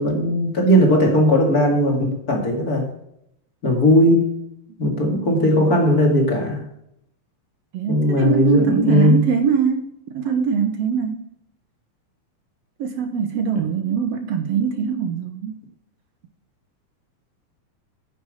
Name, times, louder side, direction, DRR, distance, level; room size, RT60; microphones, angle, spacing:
voice 1, 0.0-2.9 3.6-4.4 4.8-6.6 7.9-9.2, equal, 35° left, 1 dB, 2.4 m, -18 dB
voice 2, 7.7-11.3 12.8-15.6, right 6 dB, 65° right, 7 dB, 1.8 m, -22 dB
10.0 x 7.3 x 6.3 m, 0.76 s
omnidirectional pair, 3.4 m